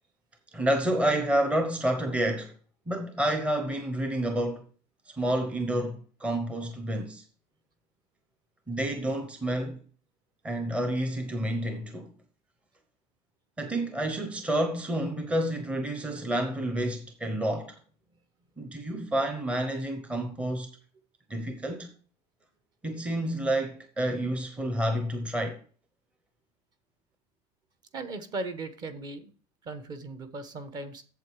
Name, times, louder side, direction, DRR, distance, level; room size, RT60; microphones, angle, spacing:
voice 1, 0.5-2.5 2.9-4.6 5.1-7.2 8.7-9.8 10.4-12.1 13.6-17.8 18.6-20.7 21.3-21.9 22.8-25.6, right 1 dB, 10° right, 0.8 m, -29 dB
voice 2, 27.9-29.3 29.6-31.0, right 2 dB, 30° right, 1.0 m, -37 dB
8.2 x 7.4 x 4.6 m
cardioid pair, 170°, 14 cm